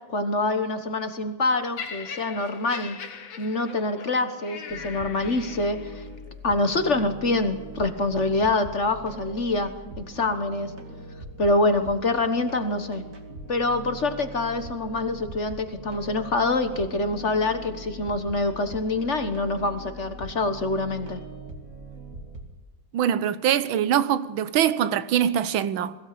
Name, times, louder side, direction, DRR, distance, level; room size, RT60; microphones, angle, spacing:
voice 1, 0.1-3.0 3.4-6.0 6.4-9.7 10.0-10.7 11.4-13.0 13.5-21.2, left 2 dB, 40° left, 1.5 m, -25 dB
Laughter, 1.8-6.0 6.8-7.0, left 6 dB, 80° left, 2.3 m, -40 dB
sound 1, 4.7-22.4, right 2 dB, 40° right, 2.7 m, -42 dB
voice 2, 22.9-26.0, right 10 dB, 90° right, 1.7 m, -23 dB
21.5 x 16.5 x 8.6 m
omnidirectional pair, 2.1 m